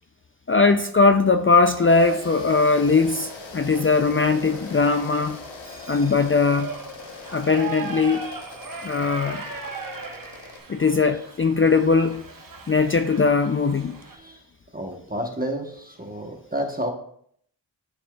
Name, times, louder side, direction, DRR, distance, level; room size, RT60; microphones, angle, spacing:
voice 1, 0.5-5.4 5.9-6.7 7.3-8.3 8.8-9.4 10.7-12.2 12.7-14.0, left 4 dB, 30° left, 0.4 m, -20 dB
Shout / Livestock farm animals working animals, 1.6-14.2, right 4 dB, 45° right, 1.2 m, -39 dB
sound 1, 1.8-10.6, left 3 dB, 80° left, 0.9 m, -41 dB
voice 2, 14.1-14.4 14.7-16.9, equal, 20° right, 1.0 m, -30 dB
12.0 x 4.3 x 2.3 m
cardioid pair, 55°, 45 cm